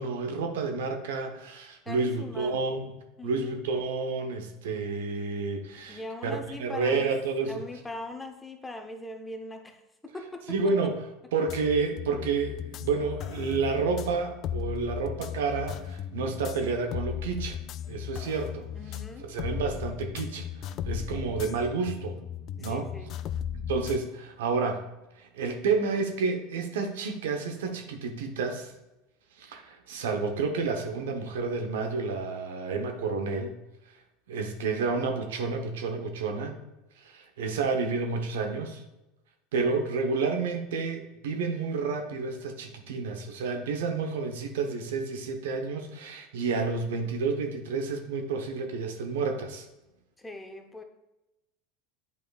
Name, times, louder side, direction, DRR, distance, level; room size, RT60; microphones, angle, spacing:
voice 1, 0.0-2.9 3.2-7.6 10.5-11.0 11.3-17.6 17.9-18.7 19.3-22.2 22.6-22.9 23.5-24.8 25.2-28.7 29.4-33.6 34.3-36.6 37.0-38.8 39.5-49.6, right 4 dB, 80° right, 5 dB, 0.9 m, -30 dB
voice 2, 1.8-2.6 3.2-3.6 5.9-7.1 7.4-10.9 18.7-19.3 22.6-23.1 39.6-39.9 50.2-50.8, left 2 dB, 10° left, 5 dB, 0.8 m, -41 dB
sound 1, 11.5-24.0, left 9 dB, 50° left, 0.3 m, -36 dB
8.2 x 5.1 x 2.4 m, 0.96 s
hypercardioid pair, 90°, 0 cm